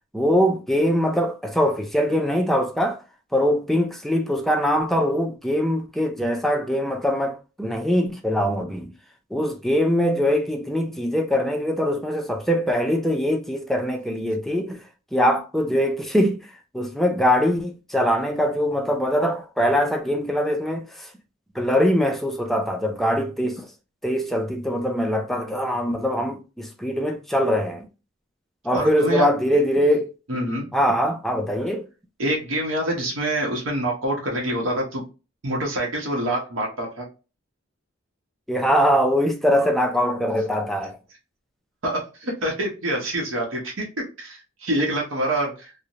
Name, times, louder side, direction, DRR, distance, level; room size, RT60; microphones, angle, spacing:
voice 1, 0.1-3.0 3.3-8.9 9.3-14.8 15.1-16.5 16.7-21.1 21.6-23.7 24.0-27.9 28.6-30.1 30.7-31.9 38.5-41.0, equal, ahead, 0.4 m, -22 dB
voice 2, 28.7-29.3 30.3-30.7 32.2-35.0 35.4-37.0 41.8-45.7, right 1 dB, 75° right, 0.8 m, -26 dB
2.5 x 2.1 x 2.8 m
head